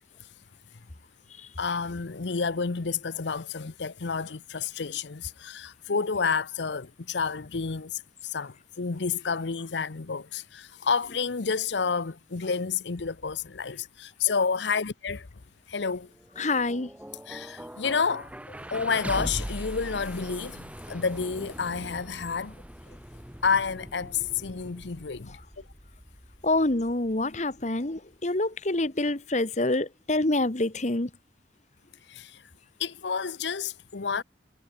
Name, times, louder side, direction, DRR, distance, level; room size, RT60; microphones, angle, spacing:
voice 1, 1.6-15.3 15.7-16.1 17.3-18.3 18.7-22.5 23.4-25.3 32.1-32.4 32.8-34.2, left 5 dB, 75° left, 0.8 m, -30 dB
sound 1, 16.1-28.1, equal, 5° right, 1.7 m, -41 dB
voice 2, 16.4-16.9 26.4-31.1, left 2 dB, 40° left, 1.3 m, -26 dB
head